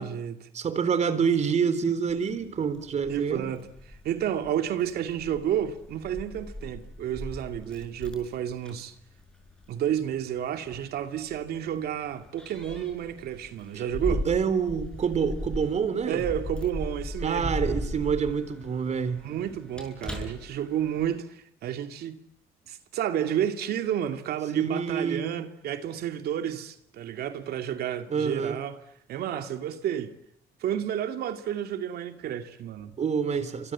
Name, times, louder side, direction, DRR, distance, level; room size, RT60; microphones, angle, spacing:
voice 1, 0.0-0.4 3.1-3.7 4.0-8.9 9.7-14.2 16.1-17.5 19.2-22.2 22.7-28.8 29.1-30.1 30.6-32.9, right 10 dB, 70° right, 2.7 m, -31 dB
voice 2, 0.5-3.5 14.1-16.2 17.2-19.2 24.6-25.3 28.1-28.6 33.0-33.7, right 6 dB, 40° right, 3.8 m, -27 dB
Keys jangling, 2.1-21.2, equal, 5° left, 6.7 m, -38 dB
30.0 x 25.5 x 7.5 m
cardioid pair, 110°, 17 cm